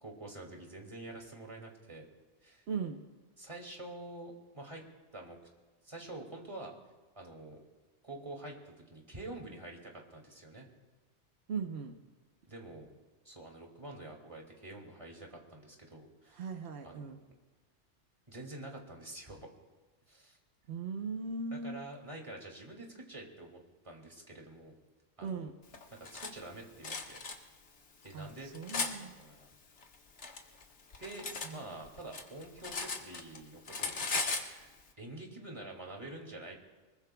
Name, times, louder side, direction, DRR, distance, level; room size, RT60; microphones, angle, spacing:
voice 1, 0.0-2.1 2.4-2.6 3.4-4.8 5.1-5.4 5.8-6.8 7.2-7.6 8.0-10.7 12.5-13.0 13.2-16.5 16.8-17.3 18.3-19.5 20.1-20.4 21.5-23.6 23.8-24.8 25.2-25.5 26.1-27.2 28.0-29.5 31.0-34.7 35.0-36.6, right 2 dB, 25° right, 0 dB, 2.5 m, -47 dB
voice 2, 2.7-3.0 11.5-12.0 16.4-17.2 20.7-21.8 25.2-25.5 28.1-29.1 31.4-31.6, right 4 dB, 65° right, 4 dB, 1.1 m, -38 dB
Cutlery silverware, 25.7-26.3 26.8-27.4 28.0-28.9 29.8-31.5 31.8-33.4 33.7-34.5, left 4 dB, 75° left, 1.6 m, -37 dB
24.0 x 21.5 x 2.3 m, 1.3 s
omnidirectional pair, 1.2 m